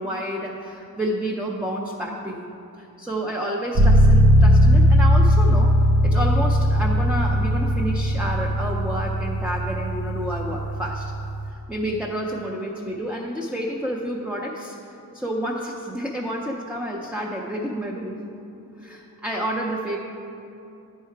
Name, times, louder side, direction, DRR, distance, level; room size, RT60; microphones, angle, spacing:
voice 1, 0.0-2.5 2.8-11.1 11.5-14.8 15.1-18.2 18.8-20.0, equal, 5° right, -2 dB, 0.5 m, -29 dB
sound 1, 3.7-11.5, equal, 70° right, 0.8 m, -18 dB
9.9 x 4.7 x 4.5 m, 2.7 s
wide cardioid pair, 75°, 39 cm